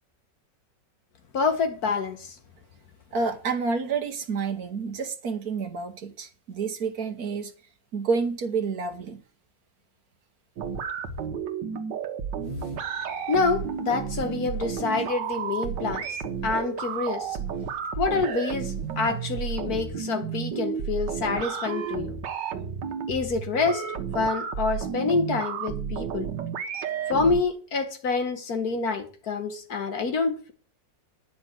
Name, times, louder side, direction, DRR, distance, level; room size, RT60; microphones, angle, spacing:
voice 1, 1.3-2.4 13.3-16.1 16.4-17.4 18.0-22.1 23.1-23.8 24.1-26.3 27.1-30.5, left 4 dB, 60° left, 1.7 m, -27 dB
voice 2, 3.1-7.5 7.9-9.2, right 5 dB, 60° right, 1.5 m, -29 dB
sound 1, 10.6-27.4, right 7 dB, 80° right, 1.7 m, -32 dB
10.0 x 5.6 x 7.7 m
omnidirectional pair, 1.9 m